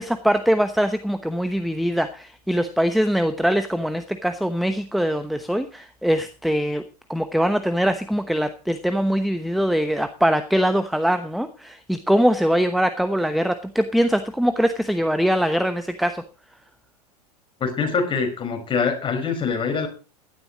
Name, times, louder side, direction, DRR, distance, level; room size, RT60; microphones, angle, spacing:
voice 1, 0.0-6.8 7.1-16.2, equal, ahead, 10 dB, 1.0 m, -22 dB
voice 2, 17.6-19.9, left 5 dB, 25° left, 4 dB, 5.2 m, -24 dB
16.5 x 12.0 x 3.0 m, 0.34 s
hypercardioid pair, 90°, 20 cm